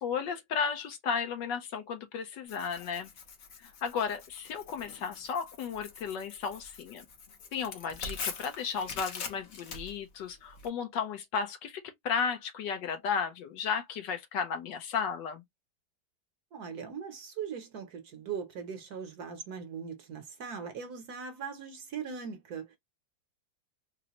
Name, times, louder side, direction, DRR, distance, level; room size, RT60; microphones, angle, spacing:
voice 1, 0.0-3.1 3.6-7.0 7.5-15.4, left 6 dB, 75° left, 1.4 m, -34 dB
Tearing, 2.5-10.7, left 5 dB, 55° left, 1.1 m, -44 dB
voice 2, 16.5-22.8, right 6 dB, 60° right, 1.1 m, -40 dB
4.0 x 2.1 x 2.8 m
omnidirectional pair, 2.0 m